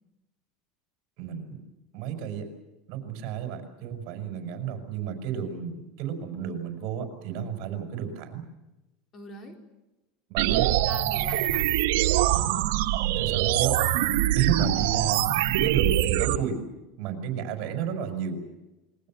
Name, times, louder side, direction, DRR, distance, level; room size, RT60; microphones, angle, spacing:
voice 1, 1.2-1.6 1.9-2.4 2.9-8.4 10.3-10.7 13.2-13.8 14.3-15.2 15.6-16.6 17.0-18.4, right 8 dB, 50° right, 6 dB, 5.6 m, -31 dB
voice 2, 9.1-9.6 10.4-12.7, left 1 dB, 30° left, 4 dB, 4.3 m, -44 dB
sound 1, 10.4-16.4, right 14 dB, 75° right, 1.7 m, -24 dB
28.0 x 22.0 x 7.6 m, 1.0 s
supercardioid pair, 155°, 0 cm